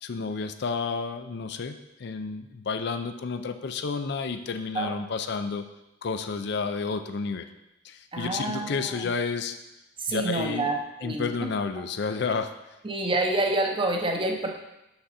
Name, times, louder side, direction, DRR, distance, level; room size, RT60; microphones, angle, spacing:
voice 1, 0.0-5.7 6.0-7.5 7.8-9.6 10.1-10.7 11.0-12.5, left 4 dB, 60° left, 9 dB, 0.4 m, -31 dB
voice 2, 8.1-9.1 10.0-11.3 12.8-14.5, right 2 dB, 25° right, 3 dB, 0.7 m, -28 dB
6.5 x 5.9 x 4.1 m, 0.93 s
head